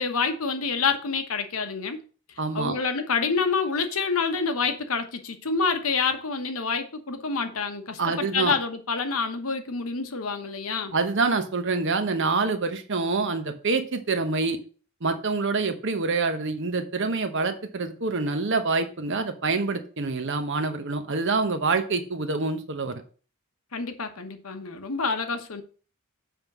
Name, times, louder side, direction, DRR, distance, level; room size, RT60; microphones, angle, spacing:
voice 1, 0.0-2.0 2.5-10.9 23.7-25.6, left 5 dB, 75° left, 1.1 m, -27 dB
voice 2, 2.4-2.8 8.0-8.6 10.9-14.6 15.0-23.0, right 3 dB, 55° right, 1.0 m, -26 dB
7.4 x 3.6 x 6.0 m
head